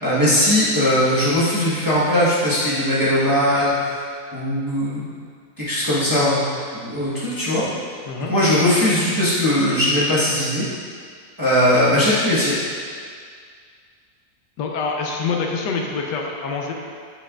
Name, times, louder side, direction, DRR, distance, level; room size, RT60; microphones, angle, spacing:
voice 1, 0.0-4.0 4.3-5.1 5.6-6.4 6.7-7.6 8.3-10.7 11.4-12.5, left 1 dB, 15° right, -10 dB, 1.1 m, -19 dB
voice 2, 14.6-16.7, left 4 dB, 80° left, 1 dB, 1.3 m, -25 dB
8.3 x 5.6 x 2.4 m, 2.1 s
omnidirectional pair, 1.8 m